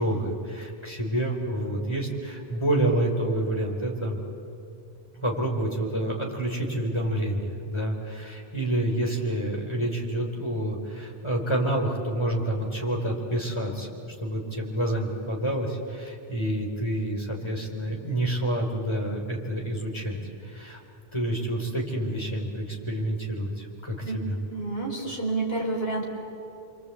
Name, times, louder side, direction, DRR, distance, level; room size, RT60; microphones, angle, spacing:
voice 1, 0.0-4.2 5.1-13.9 14.2-20.8 21.1-24.4, right 1 dB, 25° left, 0 dB, 3.8 m, -28 dB
voice 2, 24.5-26.1, right 2 dB, 65° left, -2 dB, 4.9 m, -29 dB
27.5 x 24.0 x 8.4 m, 2.7 s
omnidirectional pair, 1.1 m